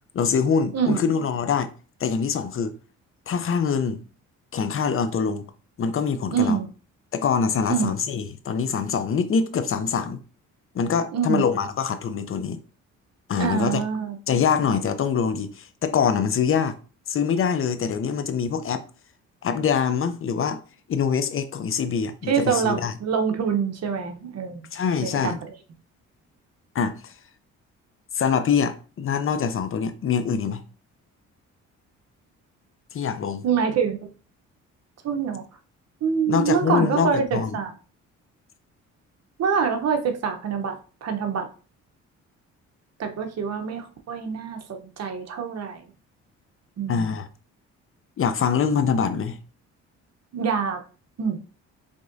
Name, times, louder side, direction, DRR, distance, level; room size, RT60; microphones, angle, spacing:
voice 1, 0.1-1.7 2.0-2.7 3.3-4.0 4.5-5.5 5.8-6.6 7.1-10.2 10.7-12.6 13.3-13.8 14.3-16.8 17.1-18.8 19.4-20.6 20.9-22.9 24.7-25.4 26.7-27.1 28.1-30.6 32.9-33.4 36.3-37.6 46.9-47.3 48.2-49.4, left 6 dB, 45° left, 0.6 m, -24 dB
voice 2, 0.7-1.0 6.3-6.7 7.7-8.0 11.1-11.5 13.4-14.2 22.3-24.6 25.0-25.4 33.4-34.1 35.0-35.4 36.0-37.7 39.4-41.5 43.0-45.8 46.8-47.1 50.3-50.8 51.2-51.4, right 6 dB, 60° right, 0.9 m, -25 dB
4.9 x 3.5 x 2.6 m
cardioid pair, 90°, 30 cm